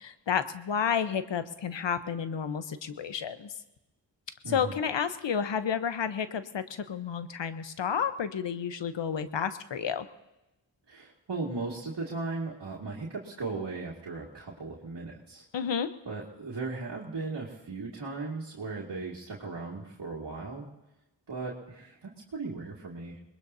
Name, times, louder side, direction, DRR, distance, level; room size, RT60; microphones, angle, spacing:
voice 1, 0.0-3.5 4.5-10.1 15.5-15.9, left 7 dB, 75° left, 11 dB, 1.0 m, -31 dB
voice 2, 10.9-15.4 16.1-20.7 21.3-23.2, right 3 dB, 65° right, -5 dB, 2.3 m, -37 dB
22.5 x 20.5 x 2.8 m, 0.95 s
cardioid pair, 45°, 44 cm